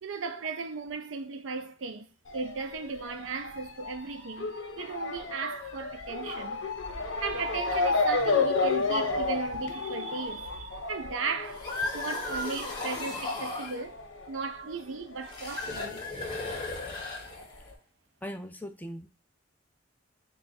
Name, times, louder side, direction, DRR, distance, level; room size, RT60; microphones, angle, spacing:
voice 1, 0.0-6.6 7.2-11.6 11.9-14.0 14.3-16.0, right 5 dB, 85° right, 0.6 m, -36 dB
Motor vehicle (road) / Siren, 2.3-15.3 15.5-16.7 17.4-17.5 17.7-17.8, left 3 dB, 90° left, 0.9 m, -32 dB
sound 1, 11.4-13.8 15.2-17.7, left 2 dB, 25° left, 0.9 m, -35 dB
voice 2, 18.2-19.1, equal, 10° left, 0.4 m, -39 dB
3.4 x 2.4 x 4.1 m
head